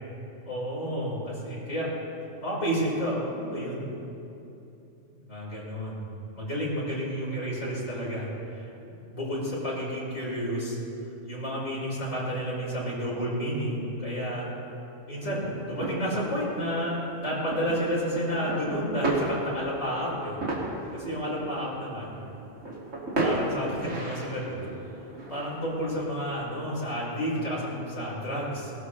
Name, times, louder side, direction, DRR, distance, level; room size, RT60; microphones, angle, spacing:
voice 1, 0.4-1.9 2.4-3.9 5.3-6.0 6.4-10.8 11.3-14.5 15.1-20.4 20.9-22.2 23.2-24.7 25.3-28.7, equal, 80° left, -6 dB, 5.2 m, -31 dB
sound 1, 15.2-26.4, right 2 dB, 70° right, 2.8 m, -35 dB
21.0 x 18.5 x 3.3 m, 2.8 s
omnidirectional pair, 1.3 m